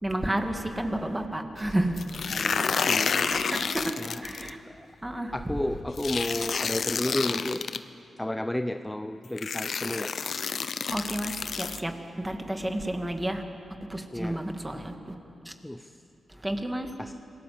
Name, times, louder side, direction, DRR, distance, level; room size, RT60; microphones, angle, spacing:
voice 1, 0.0-2.0 3.3-3.9 4.2-4.6 5.0-5.3 10.9-13.4 13.9-15.1 15.5-15.6 16.3-16.9, right 1 dB, 15° right, 5 dB, 2.4 m, -31 dB
sound 1, 2.0-4.5 6.0-7.8 8.8-8.9 9.4-11.8, left 6 dB, 65° left, 0.8 m, -29 dB
voice 2, 2.3-3.3 4.0-4.9 5.3-7.7 8.2-10.1 12.6-12.7 14.1-14.4 15.6-16.0 17.0-17.1, left 1 dB, 10° left, 9 dB, 0.7 m, -32 dB
27.0 x 19.5 x 7.8 m, 2.7 s
cardioid pair, 70°, 0 cm